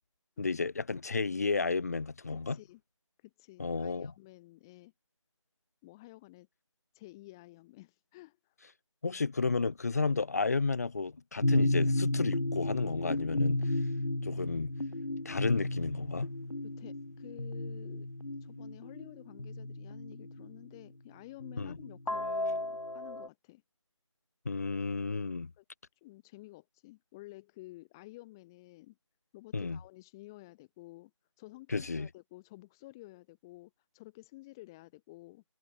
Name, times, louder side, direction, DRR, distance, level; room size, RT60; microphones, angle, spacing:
voice 1, 0.4-2.6 3.6-4.1 9.0-13.6 14.2-14.7 15.2-16.3 21.6-21.8 24.5-25.5 29.5-29.8 31.7-32.1, left 4 dB, 30° left, 7.5 m, -32 dB
voice 2, 2.3-2.8 3.2-4.9 5.8-6.5 6.9-8.5 12.5-12.6 16.6-18.1 18.4-23.6 25.6-25.7 26.0-29.0 29.3-31.1 31.4-35.4, left 19 dB, 10° left, 5.3 m, -52 dB
sound 1, 11.4-20.6 21.4-23.3, left 2 dB, 80° left, 4.3 m, -33 dB
figure-of-eight pair, 175°, 17 cm